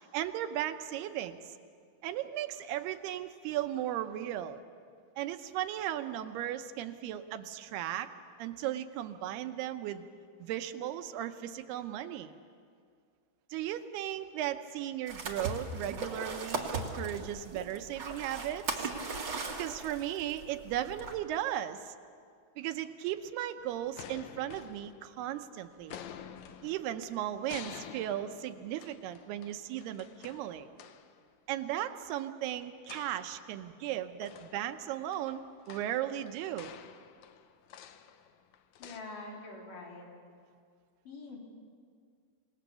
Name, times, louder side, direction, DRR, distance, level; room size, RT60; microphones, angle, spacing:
voice 1, 0.1-1.5 2.0-4.6 5.2-8.1 8.4-10.1 10.4-12.3 13.5-18.9 19.3-22.0 22.6-26.0 26.6-30.7 31.5-35.4 35.7-36.7, right 12 dB, 85° right, 9 dB, 2.8 m, -36 dB
lake swimming, 15.1-21.2, right 3 dB, 40° right, 1.8 m, -38 dB
sound 1, 23.6-25.4 25.8-31.2 32.8-33.9 34.2-39.0, left 9 dB, 80° left, 1.6 m, -50 dB
voice 2, 38.8-40.1 41.0-41.4, left 3 dB, 55° left, -1 dB, 4.8 m, -45 dB
27.0 x 19.0 x 6.9 m, 2.1 s
omnidirectional pair, 4.5 m